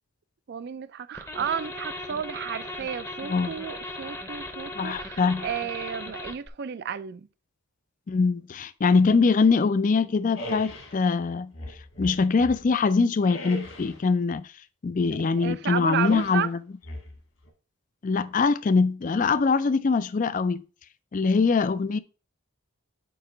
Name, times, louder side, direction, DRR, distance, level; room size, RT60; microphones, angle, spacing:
voice 1, 0.5-7.3 15.4-16.5, right 7 dB, 50° right, 0.4 m, -32 dB
sound 1, 1.1-6.5, left 1 dB, 15° left, 0.7 m, -38 dB
voice 2, 4.7-5.5 8.1-11.5 12.0-14.5 14.8-16.6 18.0-20.6 21.1-22.0, left 4 dB, 35° left, 0.4 m, -23 dB
sound 2, 10.4-11.0 11.5-12.7 13.2-14.0 15.9-16.4 16.8-17.5, equal, 65° left, 2.1 m, -39 dB
8.6 x 2.9 x 4.9 m
head